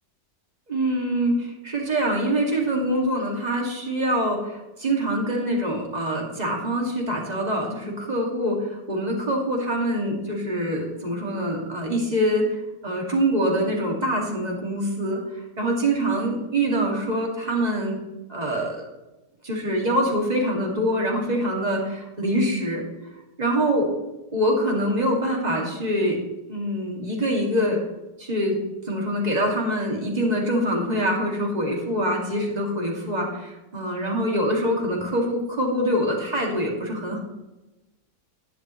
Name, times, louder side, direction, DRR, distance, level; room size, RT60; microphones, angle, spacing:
voice 1, 0.7-15.2 15.6-18.0 18.3-18.8 19.4-22.8 23.4-23.9 24.3-26.2 26.5-27.8 28.2-28.6 28.8-37.2, equal, 25° right, -1 dB, 2.1 m, -24 dB
11.0 x 10.5 x 3.0 m, 1.0 s
omnidirectional pair, 1.8 m